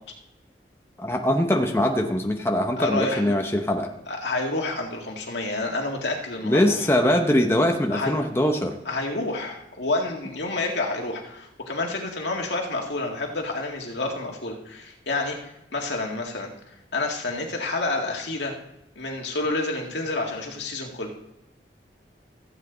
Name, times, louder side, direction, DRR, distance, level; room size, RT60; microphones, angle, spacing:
voice 1, 1.0-3.9 6.4-8.8, left 1 dB, 15° left, 2 dB, 0.8 m, -22 dB
voice 2, 2.8-3.4 4.1-6.9 7.9-8.2 8.9-16.5 16.9-18.6 19.0-21.1, left 2 dB, 85° left, 1 dB, 2.0 m, -29 dB
15.5 x 8.4 x 3.9 m, 0.83 s
head